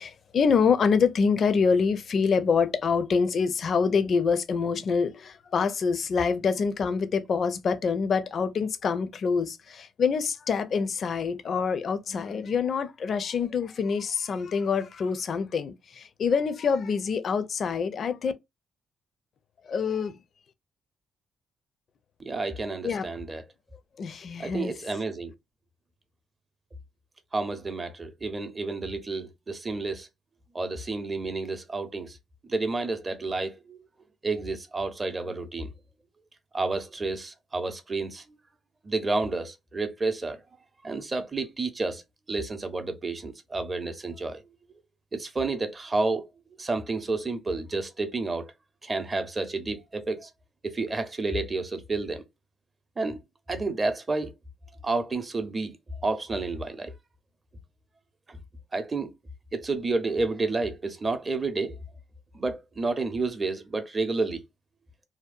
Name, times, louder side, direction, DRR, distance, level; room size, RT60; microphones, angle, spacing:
voice 1, 0.0-18.3 19.6-20.2 22.8-23.1 24.0-24.7, left 5 dB, 55° left, 0.4 m, -26 dB
voice 2, 22.2-23.4 24.4-25.3 27.3-30.1 30.5-32.2 32.4-33.8 34.2-35.7 36.5-38.2 38.8-40.4 40.8-42.0 42.3-44.4 45.1-46.3 46.6-48.5 48.8-50.3 50.6-52.2 53.0-53.2 53.5-54.3 54.8-55.8 56.0-56.9 58.3-58.4 58.7-59.1 59.5-61.8 62.3-64.4, right 3 dB, 30° right, 0.6 m, -30 dB
2.7 x 2.1 x 2.4 m
cardioid pair, 90°, 0 cm